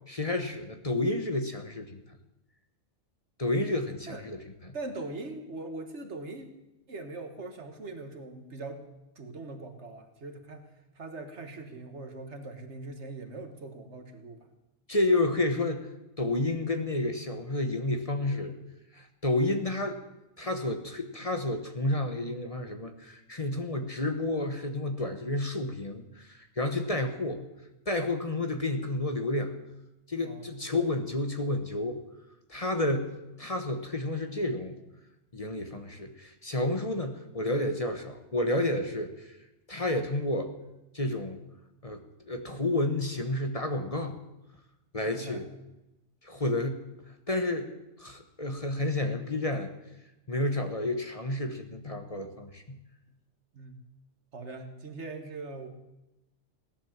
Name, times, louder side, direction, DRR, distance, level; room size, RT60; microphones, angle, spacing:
voice 1, 0.1-2.0 3.4-4.7 14.9-15.9 16.2-18.6 18.9-20.0 20.4-27.4 27.9-29.5 30.1-32.0 32.5-34.8 35.3-39.4 39.7-40.5 40.9-41.4 41.8-44.2 44.9-45.5 46.2-46.9 47.3-47.7 48.0-49.7 50.3-52.8, left 2 dB, 30° left, 6 dB, 1.2 m, -30 dB
voice 2, 4.7-6.5 6.9-8.8 9.2-10.7 11.0-14.4 26.8-27.0 30.2-30.5 45.1-45.4 53.5-53.8 54.3-55.7, right 3 dB, 70° right, 6 dB, 1.8 m, -41 dB
17.0 x 11.0 x 7.4 m, 0.96 s
omnidirectional pair, 1.2 m